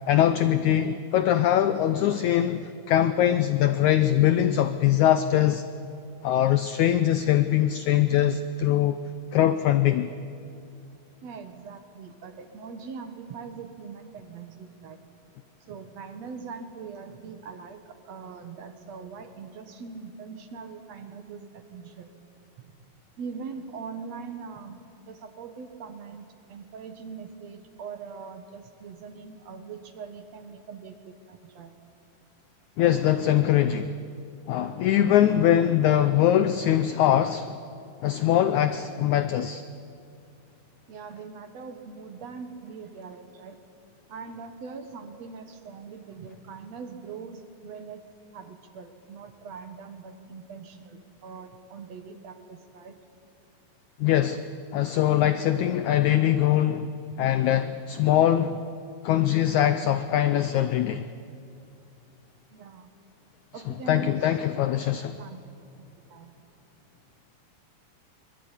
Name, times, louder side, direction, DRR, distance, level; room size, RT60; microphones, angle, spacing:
voice 1, 0.1-5.6 6.2-9.0 9.3-10.1 32.8-34.0 34.5-37.6 38.0-39.6 54.0-54.4 54.7-56.9 57.2-58.6 59.0-61.0 63.9-65.2, left 11 dB, 80° left, 11 dB, 1.7 m, -22 dB
voice 2, 11.2-15.0 15.6-22.1 22.6-22.7 23.2-31.7 40.9-43.6 44.1-48.0 48.3-53.0 62.5-62.9 63.5-64.4 65.2-65.4 65.8-66.3, right 5 dB, 55° right, 8 dB, 2.2 m, -42 dB
23.5 x 22.5 x 10.0 m, 2.5 s
omnidirectional pair, 4.3 m